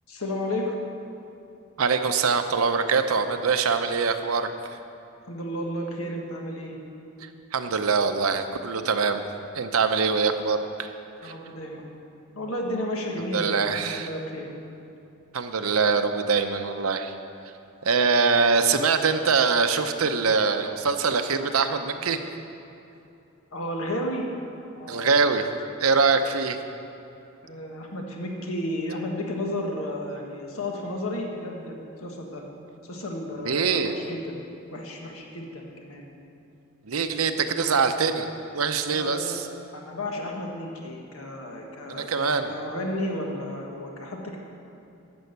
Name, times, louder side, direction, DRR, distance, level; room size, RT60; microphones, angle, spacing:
voice 1, 0.1-0.8 5.2-6.7 11.2-11.8 12.3-14.5 23.5-24.3 24.7-25.1 27.4-32.4 32.8-34.4 34.7-36.0 38.9-39.4 39.7-44.4, left 1 dB, 85° left, 0 dB, 1.5 m, -32 dB
voice 2, 1.8-4.5 7.2-9.2 9.5-10.9 11.2-11.3 13.3-14.1 15.3-17.1 17.8-22.2 24.9-25.4 25.8-26.6 33.4-33.9 36.9-38.3 38.5-39.5 41.9-42.5, right 5 dB, 90° right, 7 dB, 0.7 m, -23 dB
11.0 x 6.3 x 8.1 m, 2.7 s
head